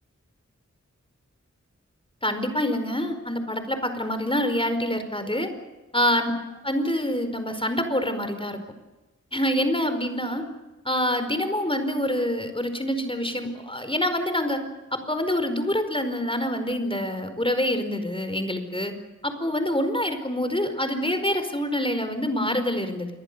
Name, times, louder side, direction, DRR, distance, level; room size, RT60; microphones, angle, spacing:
voice 1, 2.2-5.5 5.9-6.3 6.6-8.6 9.3-10.4 10.8-14.6 14.9-18.9 19.2-23.1, left 1 dB, 20° left, 8 dB, 4.8 m, -26 dB
27.5 x 23.0 x 6.9 m, 1.1 s
wide cardioid pair, 50°, 30 cm